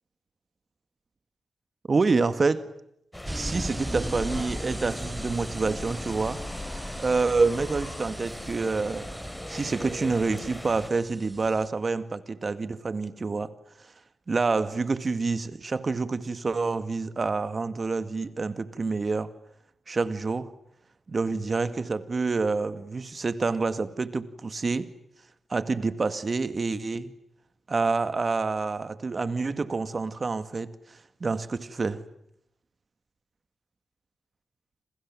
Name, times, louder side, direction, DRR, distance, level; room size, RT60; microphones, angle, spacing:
voice 1, 1.9-2.7 3.3-6.4 6.8-9.2 9.5-13.5 13.8-13.9 14.3-19.3 19.9-20.5 21.1-24.9 25.5-27.1 27.7-32.0, right 4 dB, 45° right, 2.0 m, -27 dB
sound 1, 3.1-10.9, left 1 dB, 10° left, 3.6 m, -40 dB
sound 2, 3.2-8.6, left 3 dB, 50° left, 3.6 m, -43 dB
sound 3, 3.3-11.7, right 1 dB, 15° right, 1.1 m, -39 dB
29.5 x 26.5 x 7.6 m
cardioid pair, 55°, 0 cm